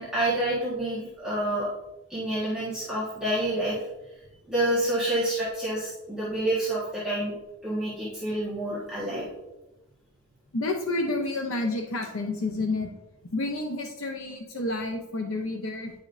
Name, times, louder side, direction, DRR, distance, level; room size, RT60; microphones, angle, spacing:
voice 1, 0.0-1.7 2.1-3.9 4.5-7.3 7.6-9.3, right 1 dB, 5° right, -9 dB, 1.4 m, -28 dB
voice 2, 10.5-12.9 13.3-15.9, left 2 dB, 70° left, 3 dB, 0.7 m, -29 dB
9.5 x 5.1 x 2.6 m, 1.0 s
head